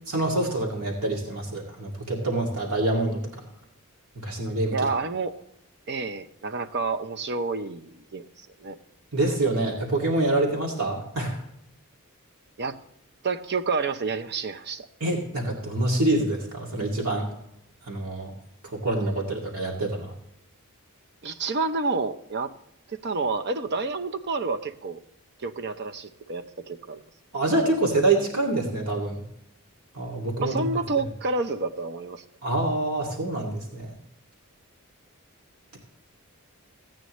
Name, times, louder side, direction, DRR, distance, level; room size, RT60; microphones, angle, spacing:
voice 1, 0.1-3.4 4.2-4.9 9.1-11.4 15.0-17.3 17.9-18.3 18.6-20.1 27.3-29.2 29.9-30.6 32.4-33.9, right 2 dB, 75° right, -1 dB, 2.3 m, -26 dB
voice 2, 4.7-5.3 5.9-8.8 12.6-12.8 13.2-14.9 21.2-22.5 22.9-25.0 25.4-27.0 30.4-32.2, right 3 dB, 50° right, 9 dB, 0.7 m, -29 dB
15.5 x 8.9 x 3.1 m, 0.77 s
head